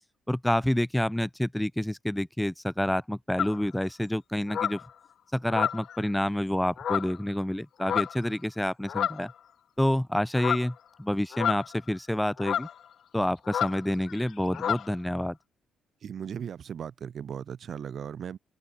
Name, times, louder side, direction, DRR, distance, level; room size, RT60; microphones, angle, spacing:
voice 1, 0.3-4.8 5.3-9.3 9.8-12.7 13.1-15.4, left 1 dB, 5° left, 2.7 m, -28 dB
sound 1, 3.4-3.6 4.5-4.9 5.5-6.1 6.8-7.2 7.8-8.2 8.9-9.3 10.3-10.7 11.3-11.9 12.4-12.7 13.4-13.8 14.1-14.3 14.5-14.9, left 9 dB, 65° left, 1.8 m, -30 dB
voice 2, 16.0-18.4, right 8 dB, 55° right, 3.7 m, -37 dB
open air
cardioid pair, 90°, 0 cm